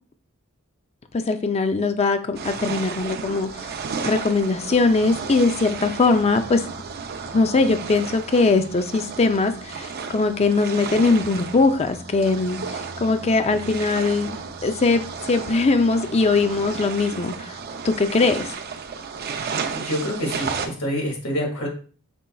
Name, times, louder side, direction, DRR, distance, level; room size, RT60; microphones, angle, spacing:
voice 1, 1.3-3.6 4.0-6.6 7.3-12.6 13.0-14.4 14.6-17.5 17.8-18.5, left 3 dB, 30° left, 0.4 m, -21 dB
sound 1, 2.3-20.7, right 5 dB, 45° right, 0.5 m, -33 dB
voice 2, 19.7-21.7, equal, 80° left, 1.9 m, -27 dB
5.2 x 4.2 x 2.3 m
head